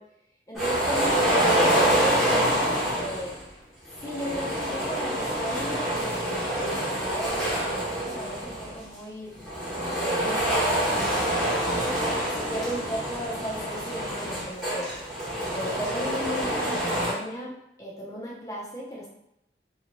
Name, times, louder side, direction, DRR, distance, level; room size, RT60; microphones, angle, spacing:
voice 1, 0.5-3.4 4.0-9.3 9.8-11.7 12.3-14.9 15.5-17.5 17.8-19.1, equal, 20° left, -4 dB, 0.6 m, -35 dB
sound 1, 0.5-3.4 4.0-8.8 9.4-17.1, right 1 dB, ahead, 0.9 m, -26 dB
2.8 x 2.4 x 2.9 m, 0.81 s
head